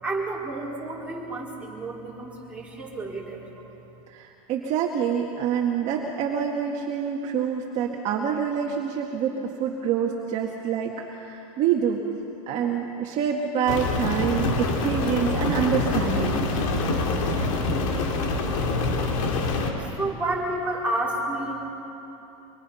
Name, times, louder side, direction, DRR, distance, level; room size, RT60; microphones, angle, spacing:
voice 1, 0.0-3.7 19.8-21.7, right 2 dB, 5° right, -4 dB, 4.4 m, -30 dB
voice 2, 4.1-12.0 12.5-16.4, right 8 dB, 40° right, 0 dB, 1.9 m, -26 dB
Rain, 13.7-19.7, left 3 dB, 70° left, 3.6 m, -25 dB
25.0 x 23.5 x 5.7 m, 3.0 s
supercardioid pair, 140°, 18 cm